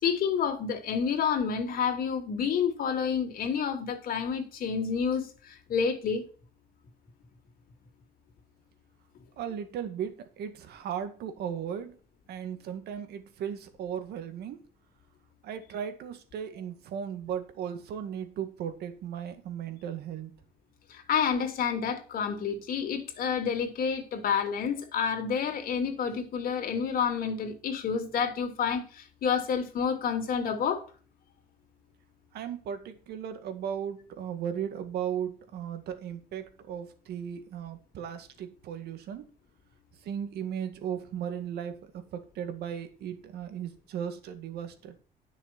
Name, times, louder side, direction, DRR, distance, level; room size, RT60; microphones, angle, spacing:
voice 1, 0.0-6.2 20.9-30.9, left 6 dB, 60° left, 2.9 m, -29 dB
voice 2, 9.4-12.0 12.3-14.6 15.4-20.3 32.3-39.3 40.0-45.0, right 8 dB, 70° right, 2.0 m, -36 dB
11.0 x 6.4 x 5.9 m
cardioid pair, 110°, 17 cm